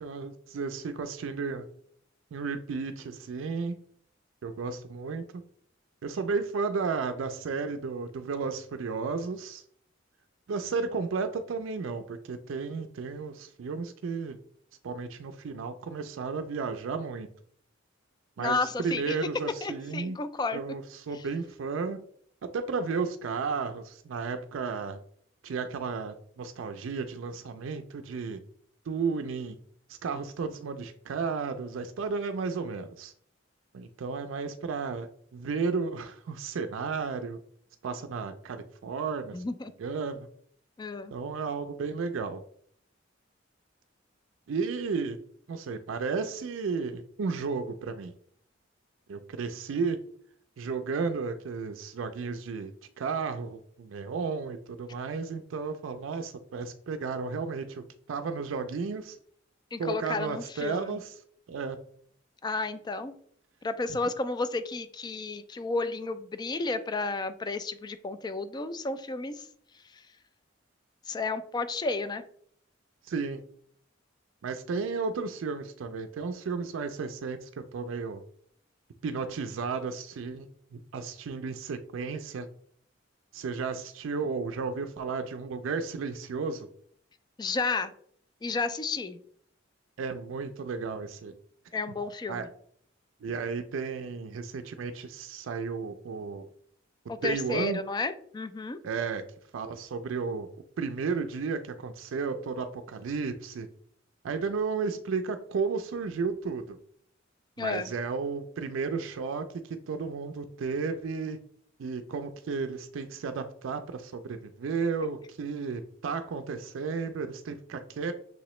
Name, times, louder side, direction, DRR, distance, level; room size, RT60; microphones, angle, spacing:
voice 1, 0.0-1.7 2.3-3.7 4.4-5.4 6.0-9.6 10.5-14.4 14.8-17.3 18.4-20.2 20.5-22.0 22.5-25.0 25.4-28.4 28.9-29.6 29.9-33.1 33.7-37.4 37.8-39.4 39.8-40.3 41.1-42.4 44.5-45.2 45.5-48.1 49.1-50.0 50.6-59.2 59.8-61.1 61.5-61.8 63.9-64.0 73.0-73.4 74.4-78.2 79.0-82.5 83.3-86.7 90.0-91.3 92.3-92.5 93.2-96.5 97.1-97.8 98.8-99.2 99.5-100.5 100.8-103.7 104.2-106.8 107.6-111.4 111.8-118.1, right 5 dB, 80° right, 8 dB, 0.4 m, -33 dB
voice 2, 18.4-19.2 19.6-20.6 39.3-39.7 40.8-41.1 59.7-61.0 62.4-63.2 63.6-69.5 71.1-72.2 87.4-87.9 88.4-89.2 91.7-92.5 97.1-98.8 107.6-107.9, left 3 dB, 20° left, 12 dB, 0.3 m, -32 dB
6.0 x 2.9 x 3.1 m, 0.62 s
head